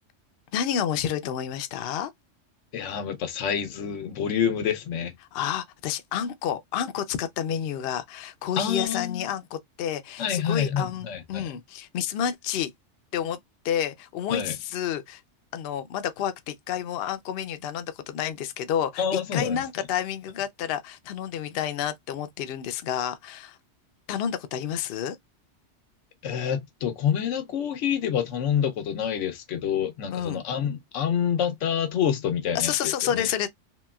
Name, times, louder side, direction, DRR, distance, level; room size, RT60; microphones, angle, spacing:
voice 1, 0.5-2.1 5.3-12.7 13.1-13.4 13.6-15.2 15.5-23.6 24.1-25.2 30.1-30.4 32.5-33.5, left 9 dB, 65° left, 0.7 m, -30 dB
voice 2, 2.7-5.1 8.6-9.2 10.2-11.5 14.3-14.6 19.0-19.6 26.2-33.3, left 8 dB, 85° left, 1.0 m, -27 dB
2.9 x 2.9 x 2.2 m
omnidirectional pair, 1.2 m